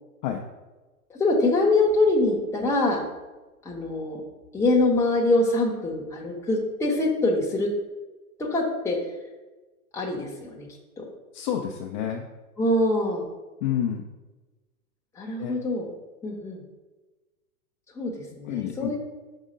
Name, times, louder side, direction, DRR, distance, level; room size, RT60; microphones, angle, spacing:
voice 1, 1.1-3.0 3.6-4.2 4.5-7.7 8.4-9.0 9.9-10.7 11.0-11.1 12.6-13.3 15.2-15.9 16.2-16.6 17.9-19.0, left 2 dB, 5° left, -2 dB, 0.9 m, -24 dB
voice 2, 11.3-12.3 13.6-14.0 15.4-15.5 18.5-18.9, left 10 dB, 30° left, 1 dB, 0.5 m, -28 dB
5.5 x 3.6 x 5.1 m, 1.2 s
hypercardioid pair, 130°, 45 cm